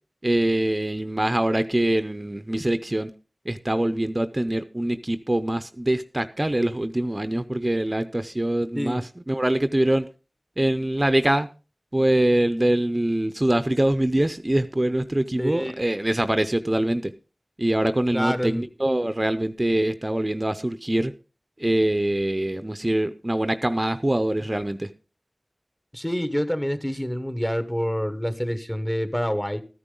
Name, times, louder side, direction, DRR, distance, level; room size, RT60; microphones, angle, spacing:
voice 1, 0.2-3.1 3.5-10.1 10.6-11.5 11.9-17.1 17.6-21.1 21.6-24.9, right 1 dB, 30° right, 11 dB, 0.6 m, -24 dB
voice 2, 15.4-15.7 18.1-18.7 25.9-29.6, equal, 15° left, 11 dB, 1.2 m, -27 dB
13.5 x 9.9 x 3.8 m, 0.33 s
wide cardioid pair, 45°, 0 cm